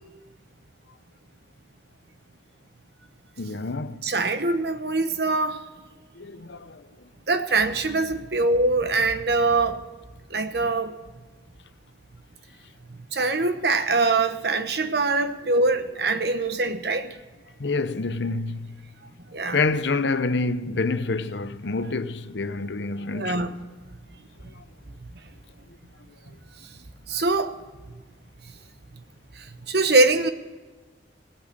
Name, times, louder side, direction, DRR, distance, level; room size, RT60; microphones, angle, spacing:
voice 1, 3.4-4.0 6.2-6.9 17.6-18.9 19.5-23.5 24.5-24.6, left 3 dB, 75° left, 0.8 m, -27 dB
voice 2, 4.0-5.6 7.3-9.8 10.3-11.0 13.1-17.1 19.3-19.6 23.1-23.5 27.1-27.6 29.4-30.3, right 3 dB, 60° right, 1.1 m, -23 dB
18.0 x 8.7 x 6.5 m
head